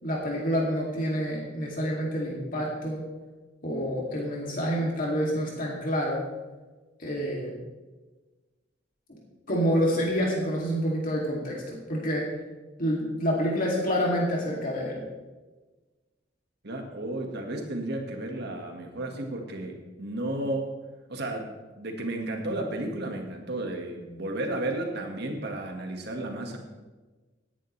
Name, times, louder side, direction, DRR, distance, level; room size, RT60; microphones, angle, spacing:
voice 1, 0.0-3.0 3.6-6.2 7.0-7.5 9.5-12.3 12.8-15.0, equal, 50° left, -3 dB, 2.6 m, -28 dB
voice 2, 16.6-20.7 21.1-26.6, right 1 dB, 60° right, 2 dB, 1.8 m, -33 dB
18.0 x 10.0 x 3.3 m, 1.2 s
head